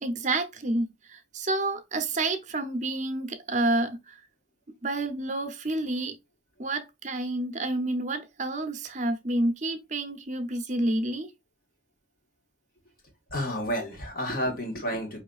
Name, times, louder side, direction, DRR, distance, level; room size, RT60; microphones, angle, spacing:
voice 1, 0.0-4.2 4.8-6.1 6.6-11.3, right 2 dB, 40° right, 0.7 m, -29 dB
voice 2, 13.3-15.2, equal, 45° left, 1.5 m, -30 dB
5.1 x 3.1 x 2.3 m
head